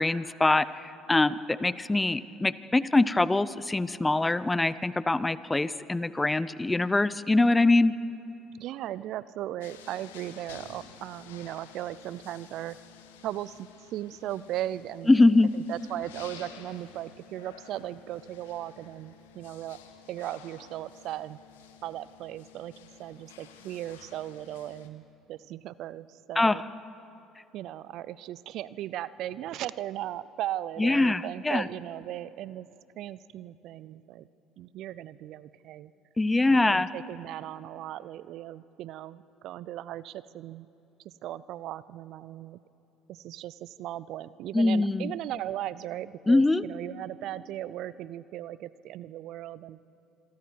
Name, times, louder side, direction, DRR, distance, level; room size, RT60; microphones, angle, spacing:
voice 1, 0.0-8.0 15.1-15.5 26.4-26.6 30.8-31.7 36.2-36.9 44.5-45.1 46.3-46.6, left 2 dB, 15° left, 17 dB, 0.7 m, -23 dB
voice 2, 8.5-12.8 13.2-15.2 15.5-19.8 20.1-21.4 21.8-22.7 23.0-25.0 25.3-26.6 27.5-32.7 33.0-34.3 34.6-35.9 36.5-40.7 41.0-42.6 43.1-49.8, right 13 dB, 60° right, 18 dB, 0.5 m, -37 dB
sound 1, 9.6-24.9, left 9 dB, 80° left, 1.4 m, -52 dB
27.0 x 22.0 x 4.6 m, 2.9 s
hypercardioid pair, 65°, 0 cm